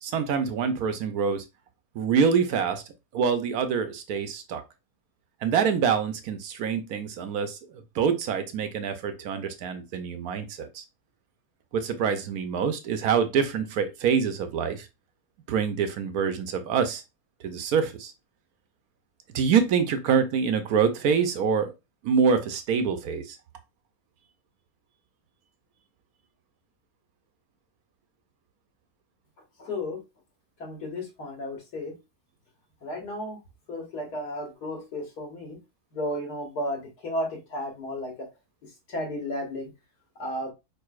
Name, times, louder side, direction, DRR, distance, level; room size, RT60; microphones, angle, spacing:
voice 1, 0.0-1.4 1.9-2.8 3.1-4.6 5.4-7.6 7.9-10.8 11.7-14.9 15.5-17.0 17.4-18.1 19.3-21.7 22.0-23.4, right 6 dB, 70° right, 9 dB, 1.1 m, -25 dB
voice 2, 29.6-30.0 30.6-32.0 32.8-33.4 33.7-35.6 35.9-38.3 38.9-39.7 40.2-40.5, left 1 dB, 80° left, 1 dB, 2.1 m, -33 dB
4.7 x 4.7 x 2.4 m, 0.24 s
omnidirectional pair, 1.7 m